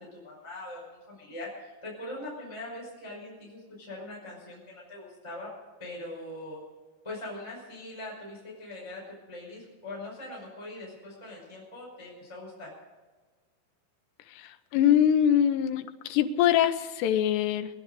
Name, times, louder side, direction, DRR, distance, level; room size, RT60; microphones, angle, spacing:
voice 1, 0.1-5.5 5.8-6.6 7.0-12.7, left 1 dB, 5° left, -4 dB, 5.1 m, -42 dB
voice 2, 14.7-15.8 16.1-17.7, left 10 dB, 75° left, 8 dB, 2.8 m, -23 dB
22.0 x 11.0 x 5.3 m, 1.3 s
omnidirectional pair, 5.4 m